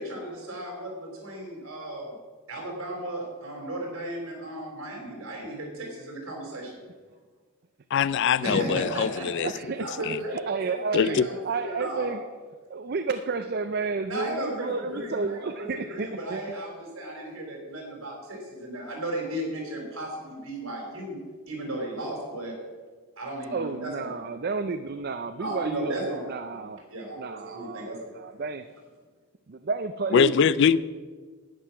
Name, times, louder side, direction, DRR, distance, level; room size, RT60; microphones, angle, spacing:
voice 1, 0.0-2.1 2.5-6.8 8.4-9.5 9.8-12.1 14.1-15.5 15.9-21.2 21.5-22.6 23.2-24.2 25.4-28.1, right 1 dB, 60° right, 4.4 m, -35 dB
voice 2, 7.9-9.5 10.0-10.2 10.9-11.3 30.1-30.8, left 7 dB, 55° left, 0.3 m, -22 dB
voice 3, 9.4-10.1 10.3-12.3 12.7-16.6 23.5-26.8 27.1-28.7 29.5-30.3, right 4 dB, 45° right, 0.4 m, -31 dB
11.0 x 9.3 x 5.9 m
head